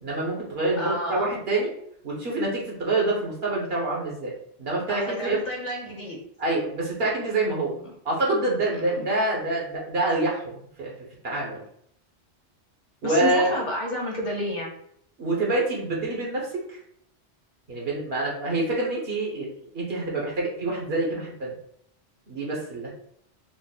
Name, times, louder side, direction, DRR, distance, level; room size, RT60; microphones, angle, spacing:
voice 1, 0.0-1.7 2.0-4.3 4.6-5.4 6.4-7.8 8.0-10.9 11.2-11.6 13.0-13.5 15.2-16.8 17.7-19.5 19.7-21.5 22.3-22.9, right 2 dB, 65° right, -2 dB, 1.3 m, -26 dB
voice 2, 0.8-1.4 4.9-6.2 7.8-7.9 8.7-9.1 13.0-14.7, equal, 45° left, -1 dB, 0.9 m, -31 dB
3.9 x 2.0 x 4.0 m, 0.68 s
omnidirectional pair, 1.1 m